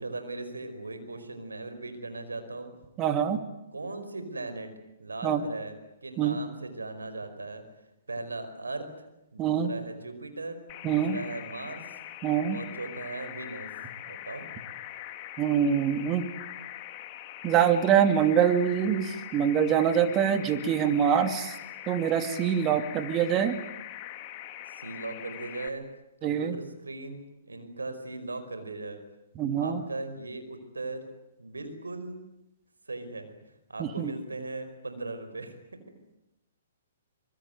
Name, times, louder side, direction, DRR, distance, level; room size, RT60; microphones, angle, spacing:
voice 1, 0.0-2.7 3.7-4.7 5.0-7.6 8.1-8.9 9.3-10.6 10.9-11.8 12.5-13.7 14.0-14.5 24.7-25.8 26.2-29.0 29.6-31.0 31.4-32.2 32.9-33.3 33.7-35.6, right 2 dB, 90° right, 9 dB, 4.9 m, -38 dB
voice 2, 3.0-3.4 5.2-5.4 6.2-6.4 9.4-9.7 10.8-11.2 12.2-12.6 15.4-16.3 17.4-21.6 21.9-23.6 26.2-26.6 29.4-29.8 33.8-34.1, right 8 dB, 25° right, 9 dB, 2.6 m, -24 dB
sound 1, 10.7-25.7, left 12 dB, 35° left, 2.4 m, -42 dB
25.5 x 22.5 x 9.4 m, 0.89 s
hypercardioid pair, 125°, 0 cm